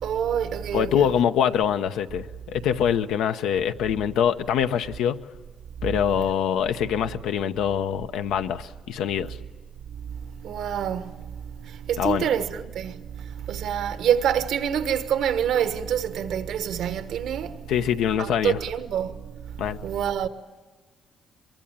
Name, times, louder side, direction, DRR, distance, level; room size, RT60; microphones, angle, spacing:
voice 1, 0.0-1.1 10.4-11.3 11.6-17.5 18.2-19.1 19.6-20.3, right 9 dB, 80° right, 1.3 m, -26 dB
voice 2, 0.7-5.2 5.8-9.4 12.0-12.2 17.7-18.6 19.6-19.8, left 9 dB, 90° left, 0.9 m, -24 dB
23.0 x 23.0 x 8.9 m
cardioid pair, 90°, 0 cm